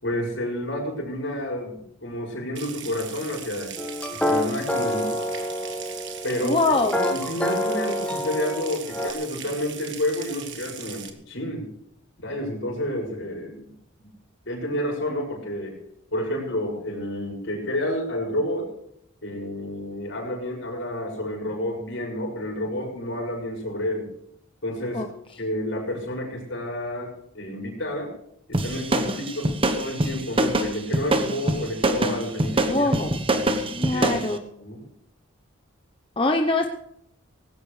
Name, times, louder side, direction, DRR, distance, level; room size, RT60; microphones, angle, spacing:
voice 1, 0.0-3.7 4.1-5.1 6.2-11.7 12.2-13.7 14.0-14.1 14.4-15.7 16.1-18.7 19.2-24.1 24.6-25.0 25.4-28.1 28.5-32.9 33.9-34.1 34.6-34.8, left 1 dB, 60° left, 0 dB, 6.5 m, -30 dB
Water tap faucet / Sink (filling or washing) / Trickle dribble, 2.6-11.1, right 9 dB, 55° right, 1.7 m, -40 dB
sound 1, 3.8-9.1, left 1 dB, 5° left, 1.3 m, -27 dB
voice 2, 6.4-7.2 24.9-25.1 32.6-33.2 33.6-34.4 36.2-36.7, left 2 dB, 25° left, 3 dB, 0.9 m, -24 dB
sound 2, 28.5-34.3, right 1 dB, 25° right, 1.2 m, -24 dB
19.0 x 16.5 x 3.4 m, 0.76 s
head